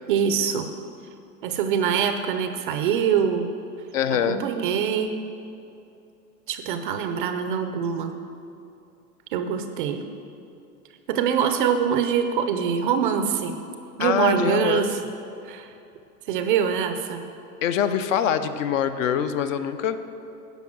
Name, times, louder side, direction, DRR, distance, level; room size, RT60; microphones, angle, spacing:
voice 1, 0.1-0.7 1.4-3.5 4.3-5.2 6.5-8.1 9.3-10.0 11.1-13.6 14.0-15.0 15.4-15.7 16.3-17.3, right 7 dB, 35° right, 8 dB, 0.4 m, -24 dB
voice 2, 3.9-4.4 14.0-14.9 17.6-20.0, left 8 dB, 55° left, 11 dB, 0.7 m, -24 dB
10.5 x 5.3 x 7.4 m, 2.6 s
hypercardioid pair, 140°, 48 cm